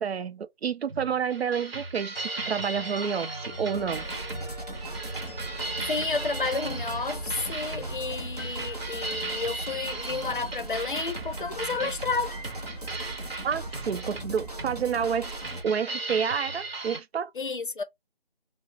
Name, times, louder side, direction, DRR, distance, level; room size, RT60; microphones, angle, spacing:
voice 1, 0.0-4.1 13.4-15.4 15.6-17.3, right 7 dB, 85° right, 0.5 m, -29 dB
sound 1, 0.9-17.0, right 3 dB, 70° right, 1.0 m, -37 dB
sound 2, 2.1-10.9 11.2-15.3, right 1 dB, 20° left, 0.8 m, -43 dB
sound 3, 3.7-15.6, right 2 dB, 40° right, 0.7 m, -39 dB
voice 2, 5.8-12.3 17.4-17.8, left 4 dB, 55° left, 0.5 m, -31 dB
2.8 x 2.0 x 2.9 m
figure-of-eight pair, 175°, 31 cm